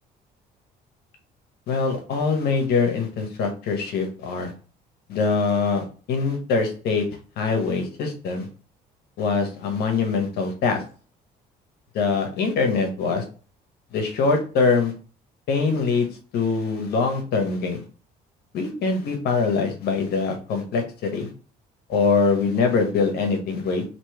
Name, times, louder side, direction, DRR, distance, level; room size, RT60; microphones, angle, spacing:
voice 1, 1.7-4.5 5.1-7.1 7.4-8.5 9.2-10.8 11.9-13.2 13.9-14.9 15.5-16.1 16.3-17.8 18.5-21.3 21.9-23.8, left 4 dB, 75° left, 4 dB, 1.2 m, -23 dB
3.0 x 2.9 x 4.5 m, 0.38 s
cardioid pair, 110°, 17 cm